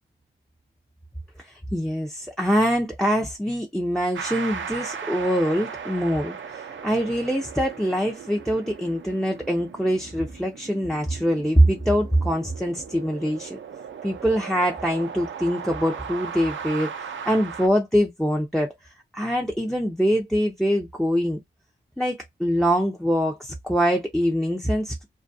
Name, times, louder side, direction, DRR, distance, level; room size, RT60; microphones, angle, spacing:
voice 1, 1.4-13.6 14.0-18.7 19.1-21.4 22.0-25.1, equal, ahead, 0.5 m, -24 dB
sound 1, 4.1-17.7, right 6 dB, 70° right, 0.5 m, -37 dB
2.3 x 2.2 x 2.6 m
cardioid pair, 55°, 21 cm